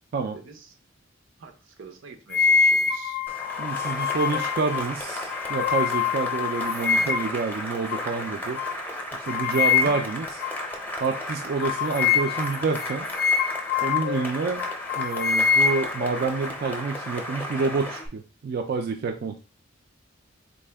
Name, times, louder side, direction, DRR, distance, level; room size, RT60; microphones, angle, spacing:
voice 1, 0.3-0.8 1.4-3.2 7.0-7.1, right 4 dB, 85° right, 5 dB, 0.7 m, -46 dB
sound 1, 2.3-7.4 7.9-8.1 8.6-8.8 9.3-10.2 10.4-10.6 11.0-11.2 11.6-14.3 14.6-16.4, left 6 dB, 55° left, 0.4 m, -25 dB
Cheering / Applause, 3.3-18.1, left 1 dB, 10° left, 0.6 m, -34 dB
voice 2, 3.6-8.6 9.1-10.2 11.0-13.1 13.8-14.7 15.0-19.4, right 4 dB, 50° right, 5 dB, 0.3 m, -28 dB
4.2 x 2.1 x 3.3 m, 0.34 s
head